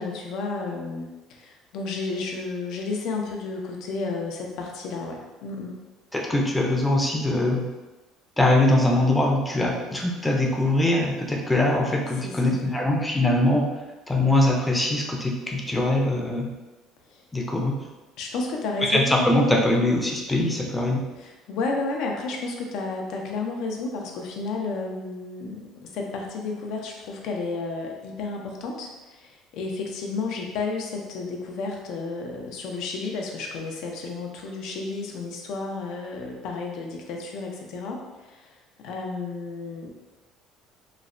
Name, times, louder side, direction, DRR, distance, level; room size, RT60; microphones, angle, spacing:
voice 1, 0.0-5.8 12.2-12.6 17.1-17.2 18.2-19.1 21.2-38.5 38.8-39.9, left 3 dB, 70° left, 1 dB, 0.5 m, -32 dB
voice 2, 6.1-7.6 8.4-13.7 14.1-16.5 17.3-17.8 18.8-21.0, left 1 dB, 10° left, 0 dB, 0.5 m, -22 dB
3.0 x 2.0 x 2.5 m, 1.1 s
supercardioid pair, 100°, 0 cm